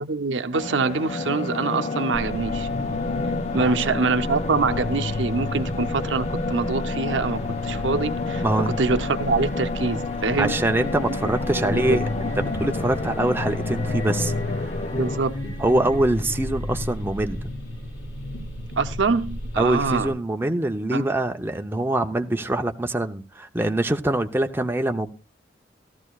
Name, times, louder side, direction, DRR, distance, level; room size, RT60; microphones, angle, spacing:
voice 1, 0.0-2.7 3.5-10.6 11.2-12.0 14.9-15.4 18.8-20.1 20.9-21.1, right 4 dB, 80° right, 0.7 m, -25 dB
sound 1, 0.5-15.2, left 3 dB, 35° left, 0.5 m, -30 dB
sound 2, 2.1-20.1, left 1 dB, 90° left, 3.5 m, -32 dB
voice 2, 3.5-4.0 8.4-8.8 10.4-12.3 12.6-14.7 15.6-17.5 19.6-25.1, right 1 dB, 10° right, 0.6 m, -24 dB
15.0 x 13.5 x 2.3 m
head